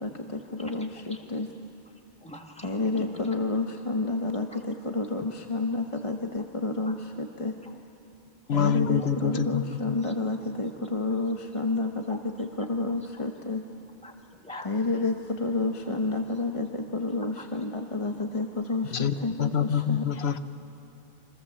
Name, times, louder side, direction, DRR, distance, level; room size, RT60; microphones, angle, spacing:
voice 1, 0.0-1.5 2.6-7.6 8.5-13.7 14.6-20.0, left 3 dB, 35° left, 4 dB, 1.1 m, -30 dB
voice 2, 2.2-3.2 4.5-4.6 6.1-6.2 6.8-6.9 7.6-7.7 8.5-8.9 10.0-10.1 12.1-12.2 13.2-13.3 14.0-14.8 15.9-16.0 17.4-17.5 18.1-18.2, left 1 dB, 5° left, 3 dB, 1.8 m, -45 dB
voice 3, 8.5-10.0 18.9-20.4, left 7 dB, 85° left, 10 dB, 1.1 m, -26 dB
28.5 x 26.0 x 7.4 m, 2.7 s
omnidirectional pair, 1.0 m